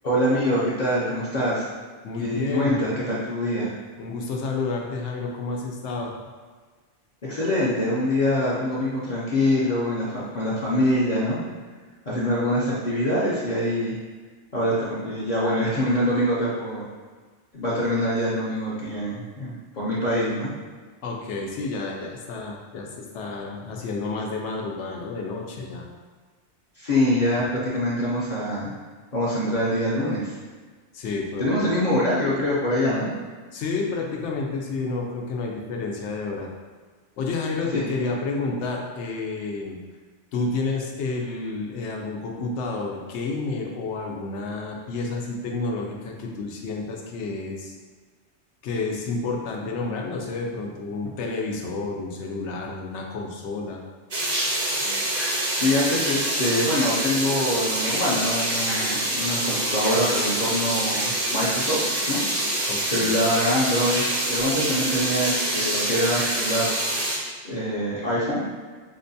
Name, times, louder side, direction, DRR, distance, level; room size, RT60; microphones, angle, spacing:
voice 1, 0.0-1.7 2.2-3.7 7.3-11.4 12.1-14.0 14.5-16.9 17.5-20.5 26.8-28.7 29.1-30.3 31.4-33.1 37.7-37.9 55.6-62.2 62.9-66.6 67.4-68.4, left 1 dB, 45° left, -9 dB, 0.6 m, -24 dB
voice 2, 2.0-2.8 4.0-6.2 21.0-25.9 27.4-27.5 30.9-31.6 33.5-36.5 37.2-39.8 40.3-47.7 48.6-53.8 62.7-63.2, left 3 dB, 85° left, 0 dB, 0.9 m, -30 dB
sound 1, 54.1-67.2, right 1 dB, 40° right, 0.7 m, -26 dB
5.3 x 2.2 x 2.6 m, 1.5 s
omnidirectional pair, 1.2 m